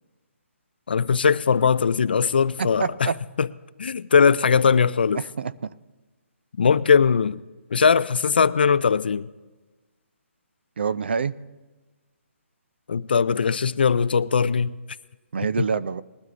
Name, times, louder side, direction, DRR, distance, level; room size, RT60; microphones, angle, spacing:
voice 1, 0.9-3.1 3.4-3.5 3.8-5.2 6.6-7.4 7.7-9.3 12.9-14.7 15.6-15.7, left 6 dB, 45° left, 0.3 m, -20 dB
voice 2, 2.6-3.2 5.2-5.7 10.8-11.4 15.3-16.0, right 5 dB, 50° right, 0.4 m, -26 dB
20.5 x 12.5 x 2.5 m
hypercardioid pair, 175°, 7 cm